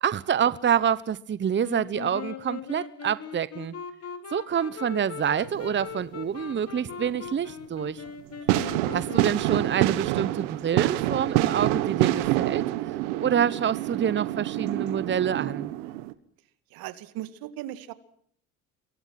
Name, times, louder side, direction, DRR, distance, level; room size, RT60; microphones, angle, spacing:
voice 1, 0.0-3.7 4.3-8.0 8.9-12.6 13.2-15.7, right 8 dB, 30° right, 1.0 m, -27 dB
Wind instrument woodwind instrument, 1.6-10.4, left 7 dB, 40° left, 4.0 m, -40 dB
sound 1, 5.4-6.0 6.4-7.2 7.7-7.8 8.5-16.1, right 16 dB, 90° right, 1.5 m, -27 dB
voice 2, 16.7-17.9, right 13 dB, 75° right, 2.2 m, -38 dB
28.0 x 23.5 x 6.0 m
supercardioid pair, 80°, 36 cm